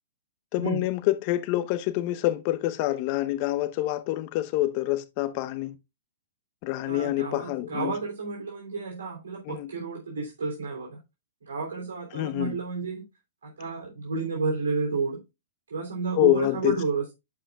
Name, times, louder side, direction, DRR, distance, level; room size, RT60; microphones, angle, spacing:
voice 1, 0.5-5.7 6.6-7.9 9.5-9.7 12.1-12.6 16.2-16.8, left 16 dB, 40° left, 0.9 m, -26 dB
voice 2, 6.8-11.0 11.5-13.0 13.4-15.2 15.7-17.1, right 4 dB, 75° right, 3.2 m, -31 dB
11.5 x 4.9 x 2.4 m
hypercardioid pair, 120°, 0 cm